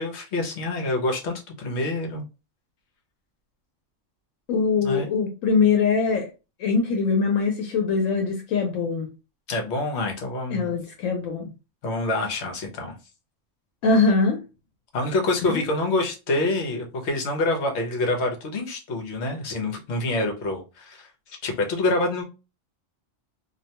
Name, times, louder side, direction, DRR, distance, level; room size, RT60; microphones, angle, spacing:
voice 1, 0.0-2.2 4.8-5.1 9.5-10.7 11.8-12.9 14.9-22.2, left 2 dB, 65° left, 1.0 m, -26 dB
voice 2, 4.5-6.3 6.6-9.1 10.5-11.5 13.8-14.4 15.5-15.6, left 4 dB, 90° left, 1.0 m, -22 dB
2.5 x 2.2 x 2.8 m
omnidirectional pair, 1.3 m